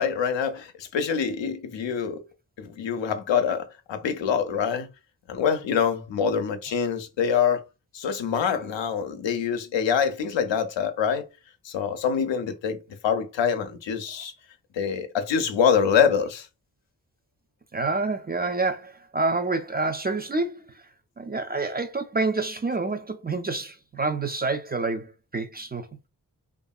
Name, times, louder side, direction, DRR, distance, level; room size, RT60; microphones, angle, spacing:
voice 1, 0.0-2.2 2.6-4.9 5.3-7.6 7.9-11.3 11.6-12.8 13.0-14.3 14.7-16.5, left 7 dB, 80° left, 0.6 m, -25 dB
voice 2, 17.7-20.8 21.2-25.9, right 3 dB, 25° right, 0.3 m, -28 dB
2.7 x 2.5 x 2.3 m
cardioid pair, 50°, 44 cm